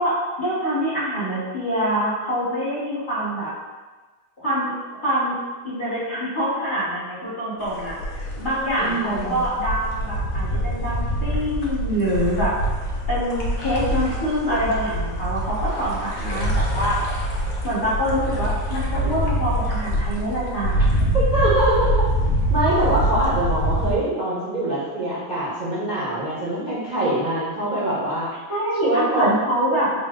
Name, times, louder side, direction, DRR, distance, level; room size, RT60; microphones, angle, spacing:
voice 1, 0.0-3.5 4.4-4.7 5.0-5.3 5.6-12.5 13.1-17.0 17.6-20.8 28.5-29.9, equal, 40° left, -10 dB, 0.8 m, -25 dB
sound 1, 7.6-23.9, equal, 75° left, 0.6 m, -24 dB
voice 2, 8.8-9.4 21.1-22.1 22.5-28.3 28.8-29.3, right 1 dB, 75° right, -10 dB, 0.4 m, -23 dB
3.9 x 2.1 x 3.6 m, 1.3 s
omnidirectional pair, 2.2 m